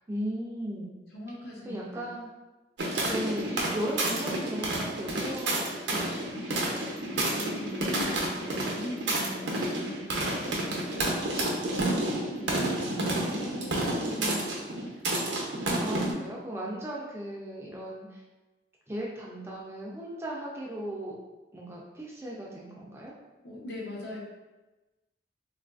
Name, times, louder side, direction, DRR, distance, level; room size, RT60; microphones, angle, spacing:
voice 1, 0.1-0.9 1.7-2.3 3.1-6.6 13.2-14.6 15.8-18.2 18.9-21.2 21.5-23.1, equal, 15° right, -4 dB, 0.4 m, -37 dB
voice 2, 1.1-2.1 7.0-13.1 13.4-14.9 23.4-24.2, left 1 dB, 65° left, -3 dB, 0.8 m, -42 dB
sound 1, 2.8-16.1, right 1 dB, 75° right, 0.6 m, -30 dB
3.7 x 2.4 x 2.3 m, 1.1 s
head